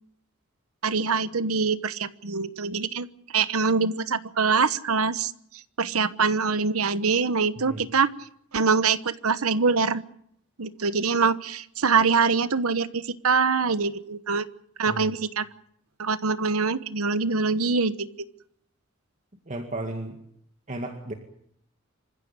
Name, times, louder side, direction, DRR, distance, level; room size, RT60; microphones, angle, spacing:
voice 1, 0.8-3.1 3.3-5.3 5.8-8.1 8.5-10.0 10.6-14.5 14.8-15.5 16.0-18.1, right 5 dB, 85° right, 14 dB, 1.1 m, -24 dB
voice 2, 19.5-20.2 20.7-21.1, right 2 dB, 35° right, 4 dB, 2.1 m, -34 dB
27.0 x 15.5 x 8.8 m, 0.71 s
head